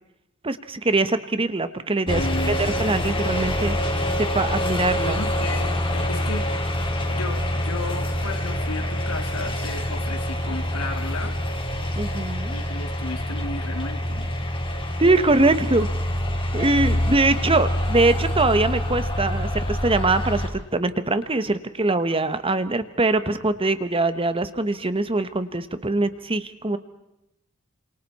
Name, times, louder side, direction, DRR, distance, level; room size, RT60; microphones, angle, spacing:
voice 1, 0.4-3.8 4.2-5.2 12.0-12.5 15.0-15.9 16.5-26.8, right 2 dB, 25° right, 11 dB, 1.2 m, -22 dB
voice 2, 2.1-2.8 5.0-6.5 7.1-11.4 12.5-14.3, left 2 dB, 85° left, 5 dB, 2.7 m, -34 dB
sound 1, 2.1-20.5, left 1 dB, 25° left, 3.4 m, -26 dB
28.5 x 27.0 x 4.3 m, 0.86 s
head